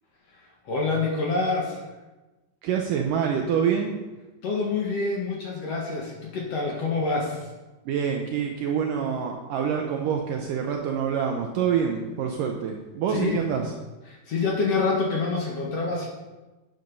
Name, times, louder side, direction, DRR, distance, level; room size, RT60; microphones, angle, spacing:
voice 1, 0.3-1.8 4.4-7.5 13.1-13.7 14.1-16.1, left 3 dB, 55° left, -1 dB, 1.9 m, -27 dB
voice 2, 2.6-4.0 7.9-13.6, right 7 dB, 75° right, 2 dB, 2.0 m, -26 dB
10.5 x 7.6 x 5.4 m, 1.1 s
omnidirectional pair, 4.6 m